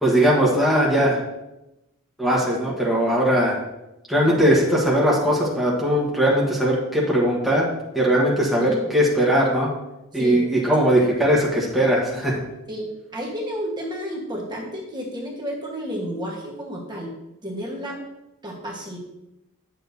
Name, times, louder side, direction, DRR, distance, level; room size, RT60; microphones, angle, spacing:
voice 1, 0.0-1.2 2.2-3.6 4.1-7.7 7.9-9.7 10.1-12.4, equal, ahead, -5 dB, 1.2 m, -19 dB
voice 2, 8.6-8.9 10.1-10.4 12.7-17.1 17.4-18.0 18.4-19.0, equal, 20° right, -2 dB, 1.3 m, -31 dB
9.7 x 6.9 x 2.7 m, 0.94 s
head